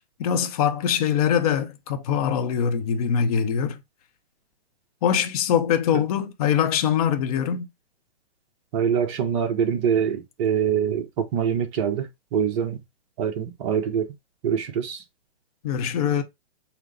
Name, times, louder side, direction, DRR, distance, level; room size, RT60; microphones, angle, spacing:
voice 1, 0.2-3.8 5.0-7.7 15.6-16.2, left 8 dB, 35° left, 0.7 m, -23 dB
voice 2, 8.7-12.1 12.3-12.8 13.2-14.1 14.4-15.0, right 8 dB, 30° right, 0.9 m, -24 dB
5.6 x 2.1 x 3.9 m
hypercardioid pair, 140°, 32 cm